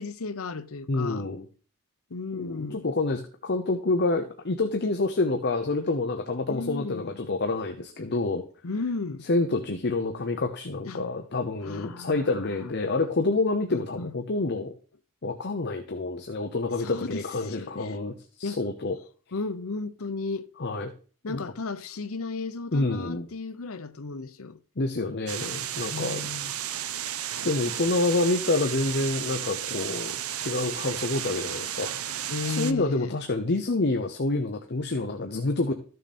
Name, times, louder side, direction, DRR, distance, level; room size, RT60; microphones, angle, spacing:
voice 1, 0.0-1.3 2.1-2.8 6.5-7.1 8.0-8.2 8.6-9.3 10.9-11.0 11.6-12.4 13.7-14.1 16.8-18.0 18.4-18.6 19.3-20.5 21.2-24.6 25.9-26.5 32.3-33.1, left 3 dB, 80° left, 0.8 m, -34 dB
voice 2, 0.9-1.5 2.3-8.5 9.3-14.7 15.2-19.0 20.6-20.9 21.2-21.4 22.7-23.3 24.8-26.2 27.4-32.2 32.6-35.7, left 2 dB, 50° left, 0.9 m, -28 dB
sound 1, 25.3-32.7, right 11 dB, 85° right, 0.7 m, -33 dB
13.0 x 6.6 x 4.3 m
head